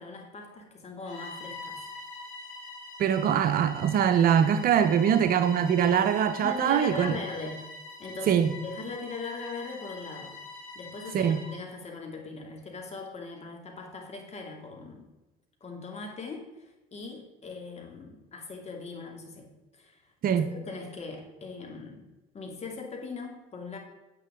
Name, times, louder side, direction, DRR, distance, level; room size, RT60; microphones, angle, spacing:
voice 1, 0.0-1.8 6.4-7.7 8.0-10.4 10.7-15.1 15.6-22.1 22.3-23.8, left 3 dB, 40° left, 2.5 m, -40 dB
Bowed string instrument, 1.0-11.6, left 3 dB, 90° left, 2.8 m, -44 dB
voice 2, 3.0-7.2 8.3-8.5 11.1-11.4 20.2-20.5, right 8 dB, 55° right, 0.8 m, -23 dB
9.5 x 7.8 x 3.7 m
hypercardioid pair, 65°, 18 cm